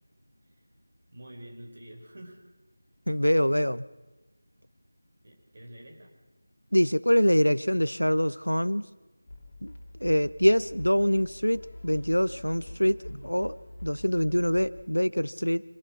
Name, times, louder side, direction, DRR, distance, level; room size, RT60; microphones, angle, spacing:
voice 1, 1.1-2.4 5.2-6.1, right 1 dB, 40° right, 1 dB, 4.8 m, -47 dB
voice 2, 3.1-3.8 6.7-8.8 9.6-9.7 10.0-13.5 13.8-15.6, equal, 85° left, 17 dB, 0.8 m, -24 dB
sound 1, 9.3-14.9, left 1 dB, 35° left, 3.0 m, -45 dB
25.5 x 17.5 x 6.3 m, 1.1 s
figure-of-eight pair, 165°, 0 cm